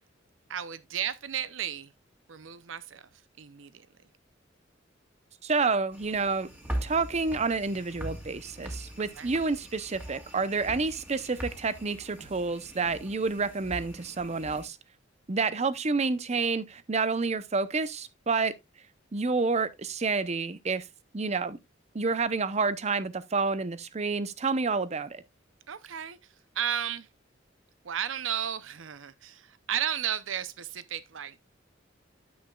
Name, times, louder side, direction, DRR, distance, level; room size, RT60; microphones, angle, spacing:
voice 1, 0.5-1.9 2.3-3.1 3.4-3.9 9.2-9.3 25.7-27.1 27.8-31.4, right 9 dB, 90° right, 0.6 m, -34 dB
voice 2, 5.4-6.5 6.8-14.8 15.3-18.5 19.1-20.8 21.1-21.6 21.9-25.2, right 4 dB, 35° right, 0.6 m, -29 dB
sound 1, 5.9-14.7, right 1 dB, 10° right, 1.9 m, -41 dB
9.4 x 8.3 x 2.3 m
head